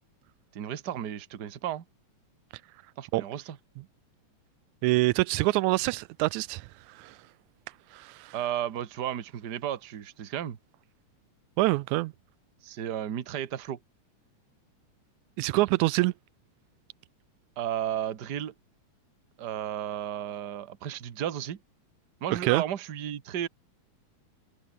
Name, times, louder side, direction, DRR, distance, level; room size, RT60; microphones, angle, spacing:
voice 1, 0.5-1.8 3.0-3.6 8.3-10.6 12.6-13.8 17.6-18.5 19.4-21.6 22.2-23.5, right 10 dB, 45° right, 1.6 m, -33 dB
voice 2, 4.8-7.2 7.9-8.4 11.6-12.1 15.4-16.1 22.3-22.6, right 20 dB, 90° right, 2.0 m, -26 dB
omnidirectional pair, 3.3 m